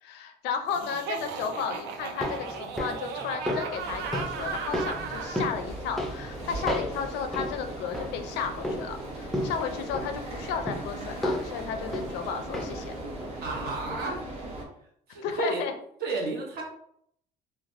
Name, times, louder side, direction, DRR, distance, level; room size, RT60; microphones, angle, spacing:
voice 1, 0.0-12.9 15.2-15.7, left 6 dB, 90° left, 6 dB, 0.5 m, -33 dB
Laughter, 0.7-5.5, right 6 dB, 85° right, 0.4 m, -36 dB
sound 1, 1.9-12.9 13.2-13.3, left 1 dB, ahead, 0.4 m, -35 dB
sound 2, 3.8-14.7, right 1 dB, 35° right, 0.8 m, -39 dB
voice 2, 13.4-14.3 15.1-15.6 16.0-16.6, right 3 dB, 65° right, 0 dB, 0.9 m, -32 dB
3.2 x 2.1 x 2.5 m, 0.69 s
cardioid pair, 140°, 17 cm